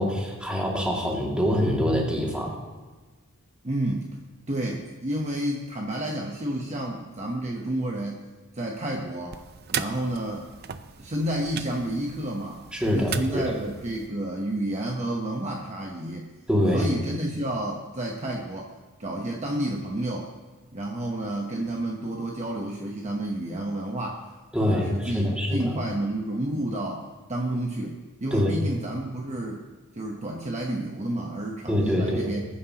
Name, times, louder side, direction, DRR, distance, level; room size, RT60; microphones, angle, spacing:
voice 1, 0.0-2.6 12.7-13.6 16.5-16.9 24.5-25.8 28.3-28.5 31.7-32.4, equal, 5° right, -3 dB, 2.3 m, -25 dB
voice 2, 3.6-4.2 4.5-8.2 8.5-9.4 9.7-10.5 11.0-12.6 12.9-16.3 16.7-18.7 19.0-20.3 20.7-24.3 24.6-29.6 29.9-32.5, right 1 dB, 30° right, 0 dB, 1.0 m, -30 dB
sound 1, 9.3-14.1, right 7 dB, 45° right, 0.6 m, -37 dB
21.0 x 9.8 x 2.9 m, 1.3 s
head